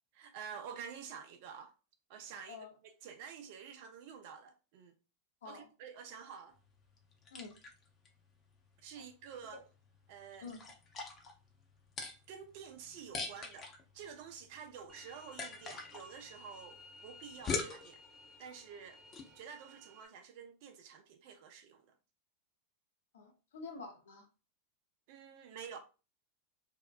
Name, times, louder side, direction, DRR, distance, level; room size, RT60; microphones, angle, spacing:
voice 1, 0.2-1.7 2.1-4.9 5.4-6.6 8.8-9.6 10.1-10.5 12.3-18.0 18.4-19.0 19.3-21.9 25.1-25.8, right 7 dB, 55° right, 0.4 m, -49 dB
sound 1, 6.5-19.4, left 4 dB, 30° left, 0.7 m, -45 dB
sound 2, 14.9-20.1, left 2 dB, 10° right, 0.6 m, -57 dB
voice 2, 23.1-24.3, left 4 dB, 75° left, 0.6 m, -48 dB
2.7 x 2.1 x 2.3 m
hypercardioid pair, 100°, 0 cm